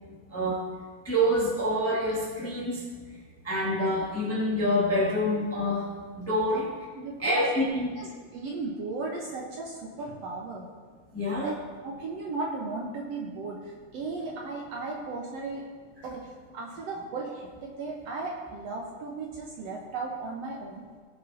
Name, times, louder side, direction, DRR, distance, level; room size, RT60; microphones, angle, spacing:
voice 1, 0.3-0.6 1.0-2.8 3.4-5.9 6.2-6.7 7.2-8.0 11.1-11.5, equal, 5° left, -6 dB, 1.3 m, -26 dB
voice 2, 7.0-7.4 7.9-10.7 11.2-11.5 11.8-15.6 16.0-20.8, right 3 dB, 65° right, -2 dB, 1.8 m, -36 dB
18.5 x 6.6 x 2.8 m, 1.5 s
omnidirectional pair, 3.6 m